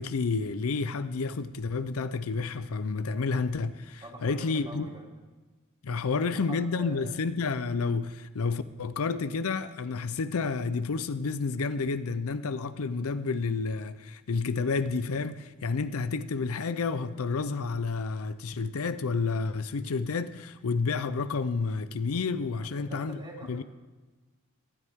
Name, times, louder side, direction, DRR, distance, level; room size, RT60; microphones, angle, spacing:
voice 1, 0.0-4.9 5.8-23.2 23.5-23.6, left 4 dB, 70° left, 0.5 m, -30 dB
voice 2, 4.0-5.1 6.1-7.1 22.6-23.6, right 1 dB, 20° right, 2.7 m, -45 dB
19.0 x 12.5 x 3.6 m
head